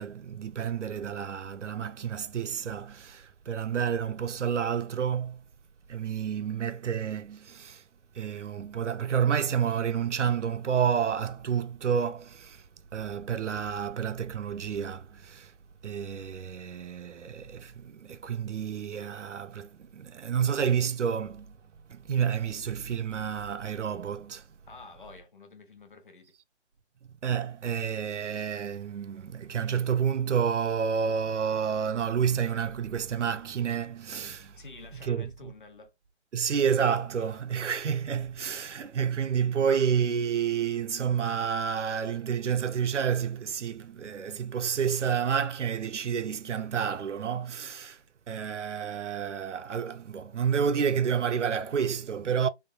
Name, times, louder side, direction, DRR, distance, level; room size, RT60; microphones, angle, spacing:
voice 1, 0.0-5.4 5.9-7.8 8.1-12.6 12.9-15.5 15.8-21.5 21.9-24.4 27.2-34.6 35.1-35.3 36.3-48.0 48.3-52.5, right 7 dB, 80° right, 0.5 m, -29 dB
voice 2, 24.7-26.3 34.6-35.9, left 3 dB, 45° left, 0.8 m, -49 dB
3.5 x 2.2 x 2.3 m
figure-of-eight pair, 160°, 35 cm